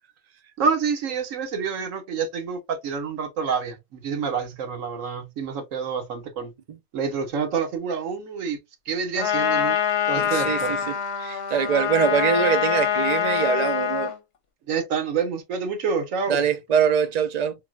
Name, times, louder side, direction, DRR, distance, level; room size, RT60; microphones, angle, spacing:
voice 1, 0.6-6.5 6.9-8.6 8.9-9.8 10.1-10.7 14.7-16.4, right 5 dB, 85° right, 1.3 m, -27 dB
Trumpet, 9.2-14.2, left 9 dB, 60° left, 0.9 m, -24 dB
voice 2, 10.2-10.9 11.2-14.1 16.3-17.5, right 7 dB, 60° right, 0.4 m, -23 dB
4.1 x 2.1 x 2.3 m
omnidirectional pair, 1.3 m